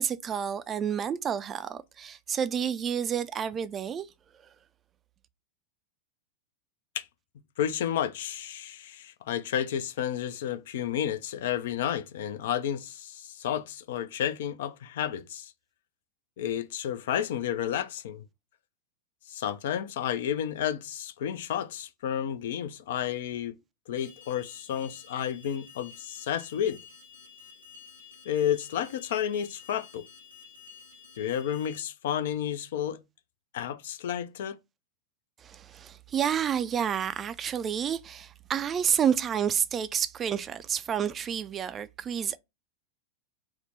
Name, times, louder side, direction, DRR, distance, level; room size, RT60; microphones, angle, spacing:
voice 1, 0.0-4.1 35.4-42.4, right 8 dB, 25° right, 0.3 m, -29 dB
voice 2, 7.6-15.5 16.4-18.2 19.3-23.6 23.9-26.8 28.3-30.0 31.2-33.0 33.5-34.6, left 10 dB, 55° left, 0.4 m, -31 dB
Alarm, 24.0-31.8, left 6 dB, 90° right, 1.2 m, -51 dB
3.5 x 2.0 x 3.2 m
figure-of-eight pair, 90°, 0 cm